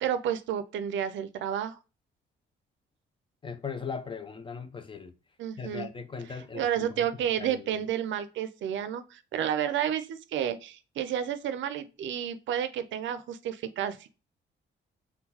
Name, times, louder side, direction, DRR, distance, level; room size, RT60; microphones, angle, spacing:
voice 1, 0.0-1.8 5.4-5.9 6.5-14.1, right 9 dB, 70° right, 0.5 m, -31 dB
voice 2, 3.4-5.1 5.6-7.1 7.4-7.8, left 5 dB, 25° left, 0.4 m, -39 dB
3.8 x 2.3 x 2.8 m
cardioid pair, 90°, 20 cm